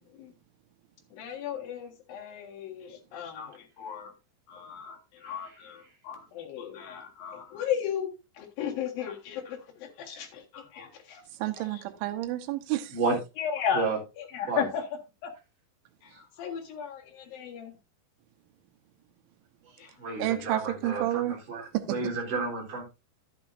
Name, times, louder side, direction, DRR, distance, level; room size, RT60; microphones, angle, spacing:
voice 1, 1.1-4.1 4.5-8.1 8.4-11.2 11.5-11.8 13.4-13.9 14.2-14.8 15.2-15.3 16.0-17.7 19.8-19.9, left 8 dB, 60° left, 2.9 m, -35 dB
voice 2, 11.4-12.9 20.2-21.4 21.7-22.0, right 14 dB, 80° right, 3.3 m, -30 dB
voice 3, 20.0-22.8, right 4 dB, 45° right, 4.8 m, -31 dB
11.5 x 9.1 x 2.6 m
omnidirectional pair, 5.5 m